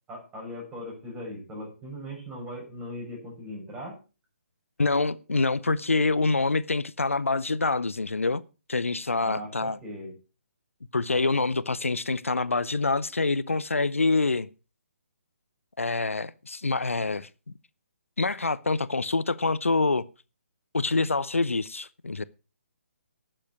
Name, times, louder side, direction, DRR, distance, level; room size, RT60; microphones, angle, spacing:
voice 1, 0.1-4.0 9.2-10.1, equal, 15° right, 6.7 m, -39 dB
voice 2, 4.8-8.4 8.7-9.8 10.9-14.5 15.8-17.3 18.2-20.1 20.7-22.2, left 3 dB, 80° left, 0.6 m, -26 dB
11.5 x 7.7 x 6.1 m
figure-of-eight pair, 135°, 7 cm